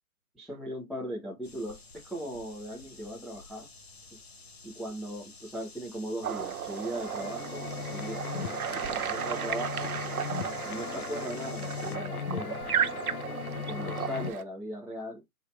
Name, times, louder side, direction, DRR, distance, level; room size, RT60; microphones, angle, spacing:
voice 1, 0.3-3.7 4.6-9.9 10.7-12.6 13.5-15.2, equal, ahead, 0.4 m, -38 dB
sound 1, 1.4-12.0, left 3 dB, 45° left, 0.8 m, -50 dB
sound 2, 6.2-14.4, right 9 dB, 75° right, 0.6 m, -34 dB
sound 3, 6.6-14.3, left 9 dB, 80° left, 0.6 m, -38 dB
4.0 x 3.2 x 3.0 m
hypercardioid pair, 170°, 44 cm